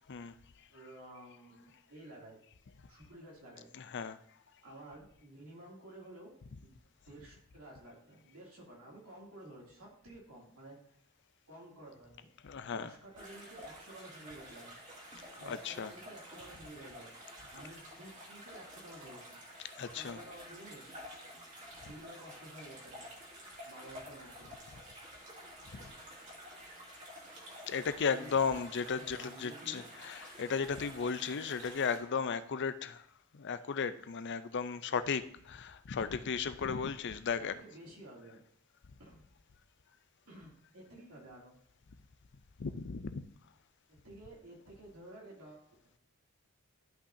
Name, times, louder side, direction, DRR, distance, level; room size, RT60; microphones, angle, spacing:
voice 1, 0.7-2.4 2.9-3.7 4.6-6.8 7.1-10.8 11.5-14.8 15.3-17.1 17.5-19.4 19.9-20.9 21.9-23.1 23.6-24.5 28.1-28.6 28.9-29.8 37.6-38.4 39.0-39.2 40.3-41.6 44.0-45.7, right 1 dB, 70° right, 2.7 m, -52 dB
voice 2, 3.8-4.2 12.4-12.9 15.5-15.9 19.8-20.2 27.7-33.0 33.3-37.5 42.6-43.3, left 6 dB, 50° left, 0.5 m, -35 dB
sound 1, 13.2-32.0, equal, 35° right, 2.3 m, -50 dB
13.0 x 5.7 x 2.7 m
head